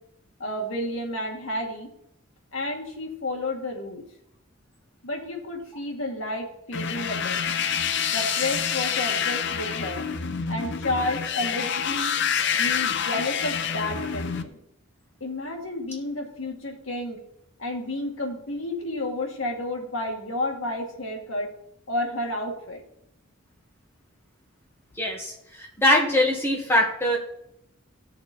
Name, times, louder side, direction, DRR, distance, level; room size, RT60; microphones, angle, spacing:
voice 1, 0.4-1.9 2.5-4.0 5.0-7.4 8.1-10.1 10.5-12.1 12.5-14.6 15.2-17.2 17.6-21.5 21.9-22.8, left 1 dB, 80° left, 2 dB, 2.2 m, -31 dB
sound 1, 6.7-14.4, left 7 dB, 60° left, 0.7 m, -27 dB
voice 2, 25.0-27.2, left 1 dB, 10° left, -1 dB, 2.0 m, -22 dB
16.0 x 6.5 x 4.5 m, 0.78 s
head